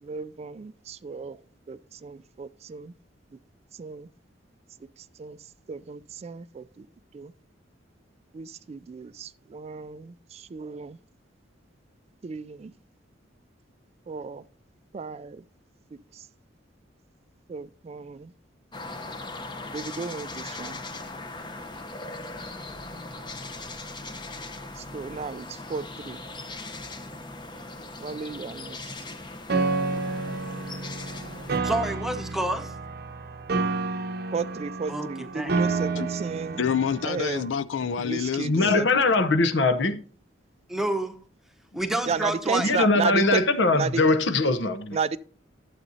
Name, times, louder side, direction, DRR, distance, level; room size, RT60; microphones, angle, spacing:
voice 1, 0.0-1.4 1.7-2.9 3.8-4.1 5.2-5.4 5.7-6.9 7.1-7.3 8.3-11.0 12.2-12.7 14.1-14.4 14.9-15.4 16.1-16.2 17.5-18.3 19.7-20.8 24.8-26.2 28.0-28.8 34.3-36.6 37.0-37.5 38.0-39.1 42.1-43.4 43.7-44.0 44.9-45.2, right 5 dB, 35° right, 0.3 m, -33 dB
sound 1, 18.7-31.6, left 2 dB, 25° left, 0.8 m, -39 dB
Piano, 29.5-37.5, right 3 dB, 55° right, 0.7 m, -30 dB
voice 2, 31.6-32.7 34.9-35.5 40.7-41.2 41.7-42.7, right 1 dB, ahead, 0.9 m, -28 dB
voice 3, 36.5-38.8, left 7 dB, 85° left, 0.5 m, -28 dB
voice 4, 38.4-40.0 42.6-45.0, left 3 dB, 65° left, 0.8 m, -21 dB
12.0 x 7.7 x 2.7 m
head